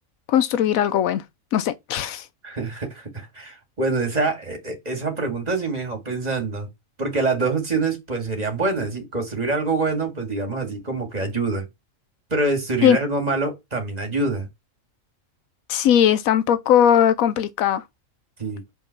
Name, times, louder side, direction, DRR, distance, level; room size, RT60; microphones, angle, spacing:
voice 1, 0.3-1.2 1.5-2.2 12.8-13.0 15.7-17.8, left 9 dB, 85° left, 1.0 m, -19 dB
voice 2, 2.4-6.7 7.0-11.7 12.3-14.5 18.4-18.6, right 3 dB, 30° right, 2.1 m, -25 dB
5.4 x 3.6 x 5.8 m
omnidirectional pair, 1.4 m